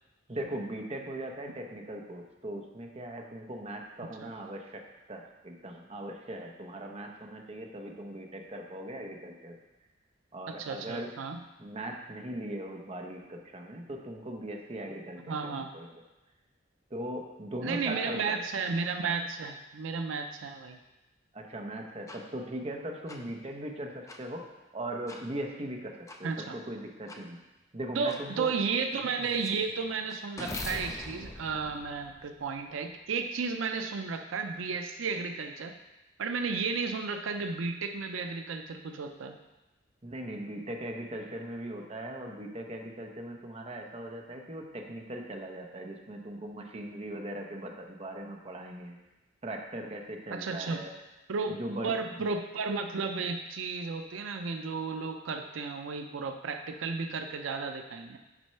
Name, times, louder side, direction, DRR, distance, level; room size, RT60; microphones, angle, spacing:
voice 1, 0.3-4.8 5.1-9.6 10.3-11.1 11.6-15.9 16.9-18.4 21.3-24.4 24.7-27.4 27.7-28.5 40.0-49.0 49.4-50.9 51.5-52.3, right 1 dB, 30° right, 2 dB, 0.8 m, -39 dB
voice 2, 10.5-11.4 15.3-15.7 17.6-20.8 26.2-26.6 27.9-35.8 36.2-39.4 50.3-50.8 51.3-58.2, right 4 dB, 85° right, 6 dB, 0.5 m, -33 dB
sound 1, 22.1-22.2 23.1-23.2 24.1-24.2 25.1-25.2 26.1-26.2 27.1-27.2 28.1-28.2 28.8-32.7, left 2 dB, 15° left, 0.5 m, -42 dB
6.1 x 4.4 x 5.5 m, 1.0 s
head